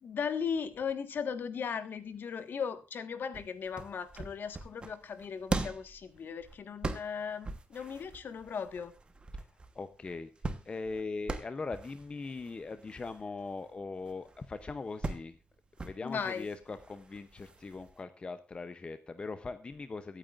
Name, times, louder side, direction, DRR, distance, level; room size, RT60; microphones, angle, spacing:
voice 1, 0.0-8.9 16.0-16.5, left 6 dB, 55° left, 10 dB, 1.4 m, -37 dB
sound 1, 3.3-18.0, right 3 dB, 25° right, 1.1 m, -42 dB
voice 2, 9.7-10.3 10.6-15.4 15.8-20.2, left 3 dB, 25° left, 10 dB, 0.6 m, -40 dB
23.0 x 9.0 x 2.4 m, 0.31 s
wide cardioid pair, 170°, 4 cm